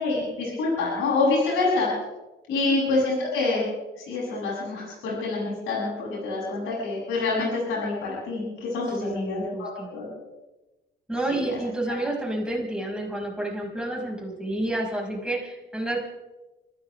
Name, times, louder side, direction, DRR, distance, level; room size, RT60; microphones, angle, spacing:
voice 1, 0.0-1.9 2.5-3.7 4.0-10.1 11.3-11.6 11.9-12.0, left 3 dB, 90° left, -5 dB, 8.0 m, -26 dB
voice 2, 9.0-9.9 11.1-16.0, right 1 dB, 5° right, -2 dB, 5.6 m, -30 dB
26.0 x 16.0 x 3.5 m, 1.1 s
cardioid pair, 90°, 20 cm